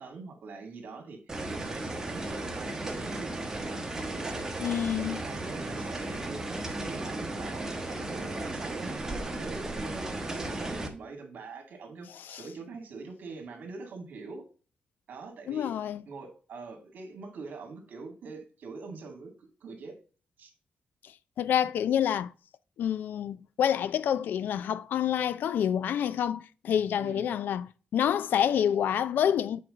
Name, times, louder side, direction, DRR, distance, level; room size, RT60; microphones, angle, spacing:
voice 1, 0.0-6.6 6.9-14.5 15.1-15.7 16.1-19.9 20.4-20.5 27.0-27.3, right 4 dB, 65° right, 2.2 m, -44 dB
sound 1, 1.3-10.9, right 2 dB, 15° right, 1.2 m, -35 dB
voice 2, 4.6-5.2 12.3-12.4 15.5-16.0 21.4-22.3 22.8-27.7 27.9-29.6, left 9 dB, 85° left, 0.4 m, -27 dB
7.7 x 4.7 x 3.7 m
wide cardioid pair, 155°, 3 cm